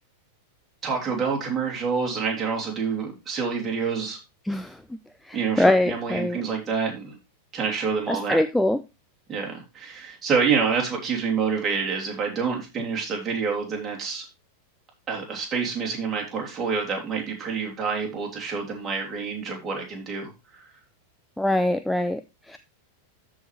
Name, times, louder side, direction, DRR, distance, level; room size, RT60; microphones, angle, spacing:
voice 1, 0.8-4.2 5.3-7.2 7.5-8.4 9.3-14.2 15.1-20.6, right 5 dB, 20° right, -1 dB, 3.1 m, -27 dB
voice 2, 4.4-5.0 5.2-6.4 8.1-8.8 21.4-22.6, left 1 dB, 5° left, 10 dB, 0.4 m, -23 dB
13.0 x 4.9 x 3.3 m, 0.25 s
figure-of-eight pair, 90°, 0 cm